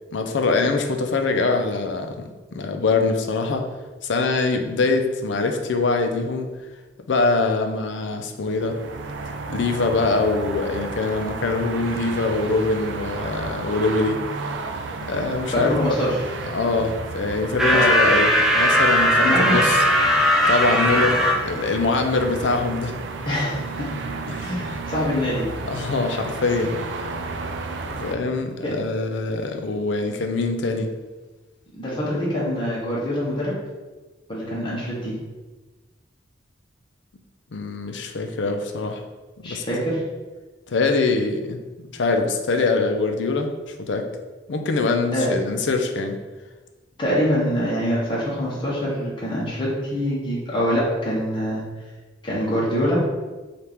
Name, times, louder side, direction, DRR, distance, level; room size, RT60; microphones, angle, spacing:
voice 1, 0.1-3.7 4.0-6.5 7.1-8.8 9.5-14.2 15.1-15.8 16.5-19.8 20.5-22.9 24.3-24.8 25.6-26.8 27.9-30.9 37.5-39.0 39.4-39.6 40.7-43.5 43.8-44.1 44.5-46.2, left 3 dB, 80° left, 5 dB, 0.5 m, -23 dB
sound 1, 8.4-28.2, right 3 dB, 80° right, 0.4 m, -32 dB
voice 2, 15.5-16.2 17.7-17.9 19.2-19.6 23.3-24.0 24.4-25.5 28.6-28.7 31.7-33.6 34.3-35.1 39.4-40.0 45.1-45.3 47.0-51.6 52.2-53.1, equal, 25° left, -6 dB, 0.9 m, -24 dB
sound 2, 17.6-21.4, equal, 5° right, 0.4 m, -18 dB
4.3 x 2.4 x 3.4 m, 1.2 s
head